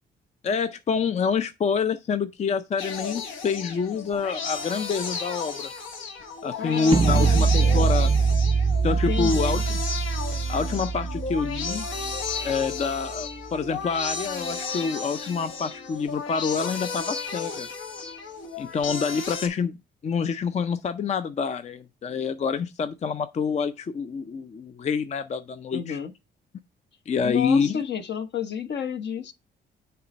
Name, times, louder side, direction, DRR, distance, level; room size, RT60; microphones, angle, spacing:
voice 1, 0.4-5.7 6.4-8.1 8.8-9.8 10.5-11.9 12.4-17.7 18.6-19.8 20.0-26.0 27.1-27.8, left 5 dB, 35° left, 0.4 m, -27 dB
sound 1, 2.8-19.5, left 5 dB, 75° left, 1.2 m, -34 dB
voice 2, 6.6-7.9 8.9-9.6 25.7-26.1 27.2-29.3, left 7 dB, 60° left, 0.9 m, -31 dB
sound 2, 6.9-12.9, right 5 dB, 25° right, 0.3 m, -24 dB
6.8 x 3.3 x 5.2 m
cardioid pair, 90°, 20 cm